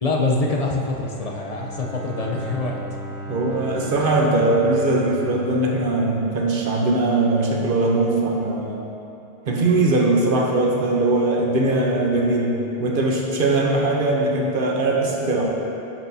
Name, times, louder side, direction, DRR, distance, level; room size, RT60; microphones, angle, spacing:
voice 1, 0.0-2.8, left 2 dB, 40° left, -1 dB, 0.7 m, -24 dB
Bowed string instrument, 1.1-7.0, equal, 20° right, 0.6 m, -36 dB
voice 2, 3.3-8.8 9.5-15.5, right 2 dB, 60° right, -1 dB, 1.1 m, -20 dB
10.5 x 6.0 x 2.8 m, 2.9 s
omnidirectional pair, 1.0 m